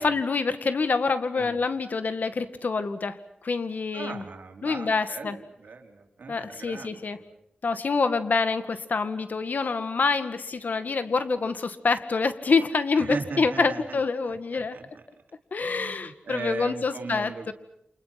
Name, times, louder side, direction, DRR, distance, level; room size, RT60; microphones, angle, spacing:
voice 1, 0.0-4.2 4.6-5.4 6.3-7.2 7.6-14.8 15.5-17.5, left 4 dB, 70° left, 10 dB, 2.0 m, -26 dB
voice 2, 3.9-7.4 13.0-15.0 15.6-17.5, right 4 dB, 80° right, 2 dB, 4.5 m, -39 dB
30.0 x 27.5 x 6.0 m, 0.76 s
wide cardioid pair, 75°, 3 cm